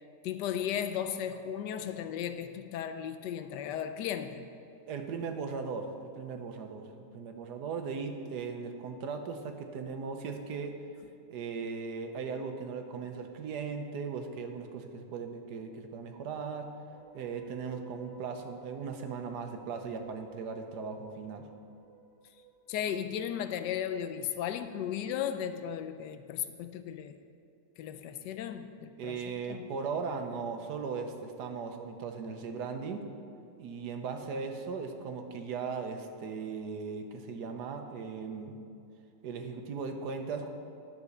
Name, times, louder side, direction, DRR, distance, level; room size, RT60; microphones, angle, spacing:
voice 1, 0.2-4.5 22.7-27.2 27.8-29.6, left 9 dB, 90° left, 9 dB, 1.2 m, -35 dB
voice 2, 4.9-10.8 11.3-16.7 17.1-21.5 29.0-33.0 33.6-38.5 39.2-40.5, right 5 dB, 75° right, 5 dB, 1.4 m, -38 dB
sound 1, 16.9-24.0, right 4 dB, 45° right, 1.4 m, -55 dB
11.0 x 6.0 x 6.5 m, 2.5 s
omnidirectional pair, 1.8 m